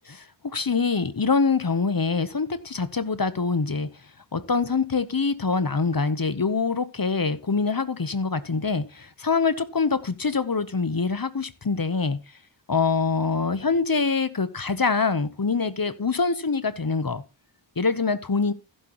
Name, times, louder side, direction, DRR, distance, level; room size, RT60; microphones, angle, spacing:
voice 1, 0.1-3.9 4.3-12.2 12.7-17.2 17.8-18.5, left 4 dB, 45° left, 0.9 m, -24 dB
15.0 x 7.8 x 3.0 m
wide cardioid pair, 45°, 47 cm